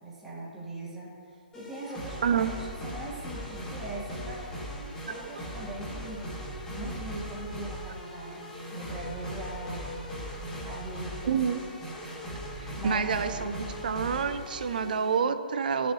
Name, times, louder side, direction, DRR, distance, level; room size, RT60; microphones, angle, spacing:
voice 1, 0.0-4.5 5.1-6.2 6.7-10.1 10.6-11.4 12.8-13.6, right 2 dB, 5° right, -7 dB, 2.0 m, -41 dB
sound 1, 1.5-15.3, equal, 15° left, 2.2 m, -39 dB
voice 2, 2.2-2.5 11.3-11.6 12.6-13.6 13.8-15.9, right 6 dB, 65° right, 11 dB, 0.6 m, -28 dB
12.5 x 7.3 x 3.2 m, 2.2 s
hypercardioid pair, 135°, 5 cm